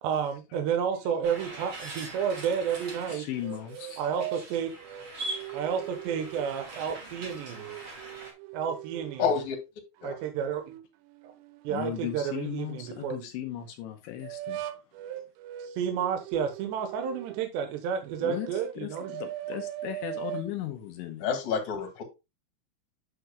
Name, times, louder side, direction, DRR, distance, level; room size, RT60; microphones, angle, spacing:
voice 1, 0.0-3.2 4.0-4.7 5.5-7.7 8.5-9.3 10.0-10.6 11.2-11.3 11.6-13.2 15.6-19.1, right 7 dB, 75° right, 2.9 m, -31 dB
sound 1, 1.2-8.3, right 2 dB, 40° right, 1.9 m, -42 dB
voice 2, 3.1-4.1 11.7-14.8 18.2-21.2, left 12 dB, 75° left, 2.9 m, -37 dB
sound 2, 3.4-6.7 7.2-9.5 10.0-13.1 14.2-17.5 18.1-20.5, right 13 dB, 90° right, 3.4 m, -41 dB
voice 3, 9.2-9.6 10.0-10.2 21.2-22.0, left 6 dB, 50° left, 2.5 m, -28 dB
9.3 x 7.7 x 2.2 m
omnidirectional pair, 5.9 m